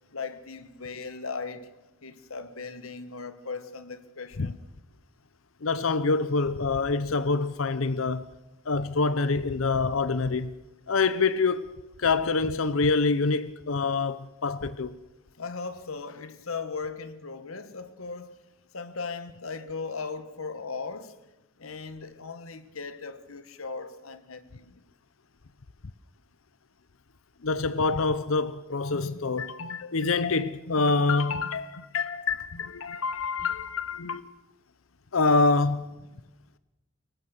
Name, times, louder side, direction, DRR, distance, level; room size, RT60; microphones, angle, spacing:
voice 1, 0.1-1.7 2.0-4.6 15.4-18.3 18.7-21.2 21.6-24.8 36.1-36.3, left 4 dB, 85° left, 1.5 m, -38 dB
voice 2, 5.6-8.3 8.7-10.5 10.9-11.7 12.0-15.0 27.4-34.3 35.1-35.9, left 4 dB, 70° left, 0.8 m, -26 dB
23.5 x 19.5 x 6.6 m
head